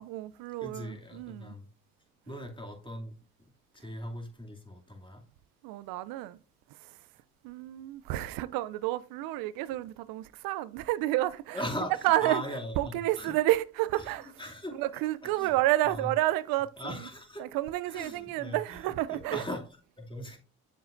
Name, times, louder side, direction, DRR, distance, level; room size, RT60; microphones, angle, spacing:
voice 1, 0.0-1.5 2.3-2.4 5.6-6.4 6.7-7.0 7.4-11.6 12.0-12.4 12.8-14.3 14.7-17.1 17.4-19.4, right 16 dB, 75° right, 0.5 m, -30 dB
voice 2, 0.6-1.7 2.3-3.1 3.7-5.2 11.5-11.9 12.2-13.3 14.0-14.1 14.4-14.8 15.2-15.5 15.8-16.1 16.8-17.5 17.9-19.6 20.0-20.4, left 1 dB, 15° left, 2.5 m, -39 dB
8.0 x 7.1 x 2.5 m
hypercardioid pair, 45°, 35 cm